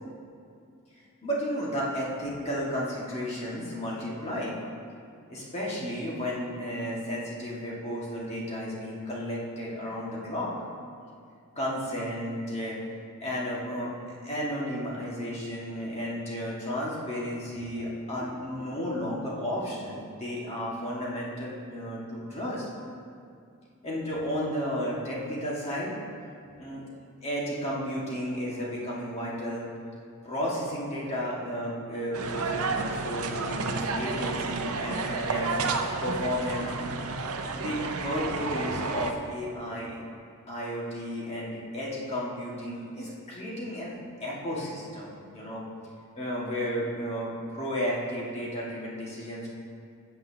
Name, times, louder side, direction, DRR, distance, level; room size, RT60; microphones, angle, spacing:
voice 1, 1.2-4.5 5.3-10.5 11.6-12.8 13.2-13.9 14.2-22.7 23.8-25.9 26.6-26.8 27.2-29.6 30.2-35.5 36.0-36.7 37.5-40.0 40.5-43.9 44.2-45.6 46.1-49.6, equal, 30° left, -5 dB, 1.8 m, -33 dB
sound 1, 32.1-39.1, right 3 dB, 70° right, 0.7 m, -31 dB
13.5 x 8.2 x 2.8 m, 2.4 s
head